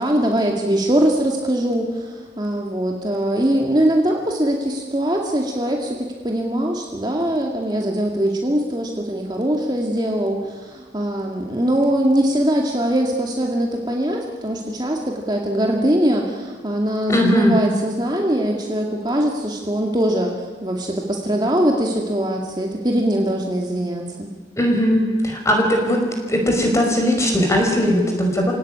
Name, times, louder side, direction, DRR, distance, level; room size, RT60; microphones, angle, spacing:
voice 1, 0.0-24.3, right 1 dB, 25° right, 0 dB, 2.2 m, -22 dB
voice 2, 17.1-17.6 24.6-28.5, equal, 15° left, 1 dB, 5.4 m, -19 dB
27.5 x 18.0 x 9.8 m, 1.5 s
head